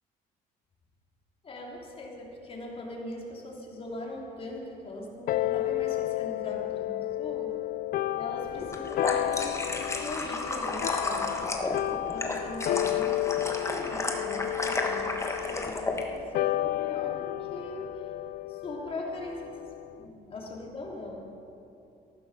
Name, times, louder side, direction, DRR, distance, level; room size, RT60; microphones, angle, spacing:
voice 1, 1.4-7.5 8.1-11.4 12.1-18.1 18.5-19.6 19.9-21.2, left 2 dB, 35° left, -2 dB, 3.2 m, -40 dB
sound 1, 5.3-20.0, left 15 dB, 60° left, 0.4 m, -32 dB
sound 2, 8.6-16.0, left 2 dB, 15° left, 1.4 m, -32 dB
14.5 x 11.5 x 6.2 m, 2.8 s
cardioid pair, 110°, 17 cm